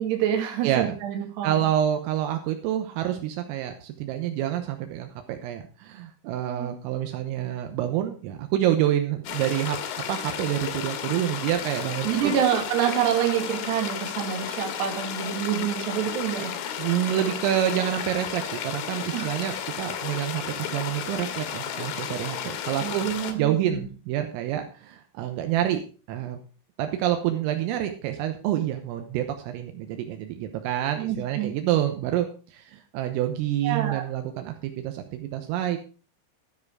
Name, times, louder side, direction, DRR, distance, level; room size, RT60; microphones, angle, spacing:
voice 1, 0.0-1.7 6.5-6.7 12.0-16.5 19.1-19.3 22.8-23.9 31.0-31.5 33.6-34.0, right 10 dB, 60° right, 3 dB, 3.8 m, -27 dB
voice 2, 0.6-1.0 1.4-9.8 10.1-12.3 16.8-23.1 23.4-25.8 26.1-26.4 26.8-35.8, right 11 dB, 80° right, 6 dB, 3.6 m, -27 dB
sound 1, 9.3-23.3, left 9 dB, 75° left, 3.7 m, -33 dB
13.5 x 7.6 x 4.7 m, 0.36 s
omnidirectional pair, 5.9 m